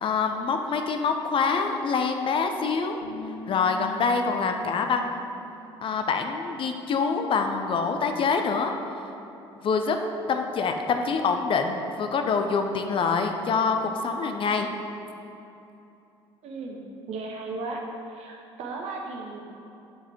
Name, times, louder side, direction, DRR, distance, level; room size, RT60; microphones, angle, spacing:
voice 1, 0.0-3.0 3.5-5.2 5.8-8.7 9.6-10.0 10.3-14.7, left 5 dB, 40° left, 5 dB, 0.6 m, -25 dB
Bass guitar, 3.0-9.3, equal, 75° left, 1.0 m, -46 dB
voice 2, 16.4-17.8 18.1-19.4, right 3 dB, 50° right, 0 dB, 1.1 m, -36 dB
7.5 x 4.9 x 4.9 m, 2.8 s
figure-of-eight pair, 55°, 14 cm